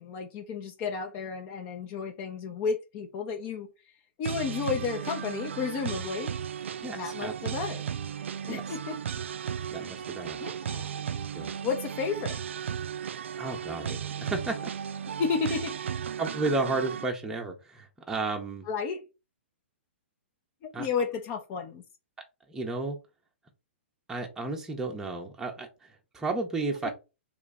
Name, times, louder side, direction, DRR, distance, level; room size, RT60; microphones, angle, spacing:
voice 1, 0.0-3.7 4.2-6.3 7.0-7.8 8.5-9.0 10.4-10.9 11.6-12.4 15.2-15.7 18.7-19.0 20.8-21.8 26.8-26.9, left 5 dB, 35° left, 4 dB, 0.6 m, -32 dB
sound 1, 4.2-17.0, right 8 dB, 75° right, 0.3 m, -35 dB
voice 2, 6.8-7.3 8.4-8.8 9.7-10.4 11.3-11.5 13.4-14.7 16.2-18.7 20.7-20.9 22.5-23.0 24.1-26.9, right 3 dB, 10° right, 1 dB, 0.7 m, -33 dB
3.1 x 3.0 x 3.6 m, 0.28 s
hypercardioid pair, 125°, 7 cm